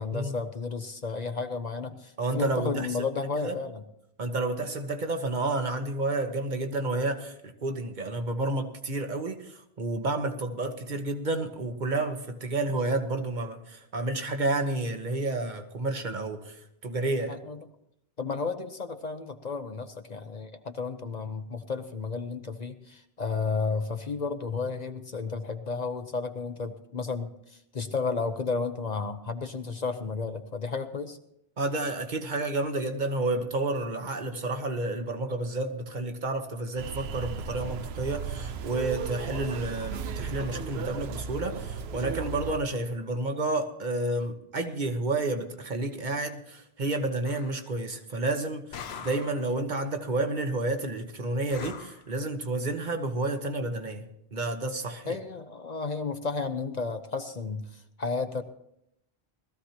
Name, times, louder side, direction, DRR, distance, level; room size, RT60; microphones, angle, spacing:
voice 1, 0.0-3.8 17.3-17.6 18.2-31.2 55.1-58.4, left 4 dB, 45° left, 0.8 m, -32 dB
voice 2, 2.2-2.9 3.4-3.6 4.2-17.4 31.6-54.0 54.3-55.2, right 2 dB, 50° right, 1.3 m, -30 dB
sound 1, 36.8-42.6, right 6 dB, 80° right, 0.9 m, -35 dB
sound 2, 47.3-47.6 48.7-49.5 51.5-52.1, left 6 dB, 85° left, 1.0 m, -42 dB
20.0 x 14.5 x 2.9 m
omnidirectional pair, 1.0 m